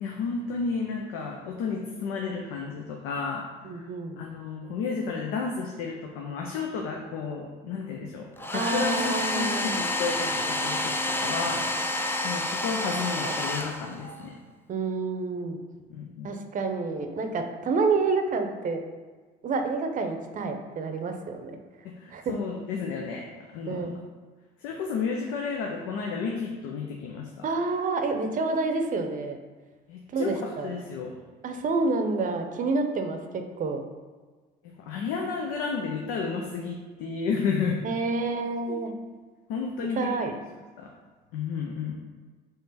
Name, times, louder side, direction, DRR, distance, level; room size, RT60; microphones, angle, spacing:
voice 1, 0.0-3.4 3.8-3.9 4.2-11.9 12.2-14.3 15.9-16.3 22.0-23.3 23.5-23.9 24.6-27.3 29.9-31.1 34.8-37.8 38.7-38.8 39.5-40.4 40.8-40.9 41.3-42.0, left 5 dB, 75° left, 0 dB, 0.6 m, -32 dB
voice 2, 3.6-4.2 8.5-9.9 13.2-13.4 14.7-15.6 16.2-18.8 19.4-21.5 22.1-22.3 23.7-23.9 27.4-29.4 30.1-30.7 31.4-33.8 37.8-38.9 39.9-40.3, right 3 dB, 40° right, 6 dB, 0.6 m, -28 dB
Domestic sounds home sounds, 8.4-14.2, left 1 dB, 10° left, 0.4 m, -29 dB
3.7 x 3.4 x 4.1 m, 1.4 s
supercardioid pair, 90°, 20 cm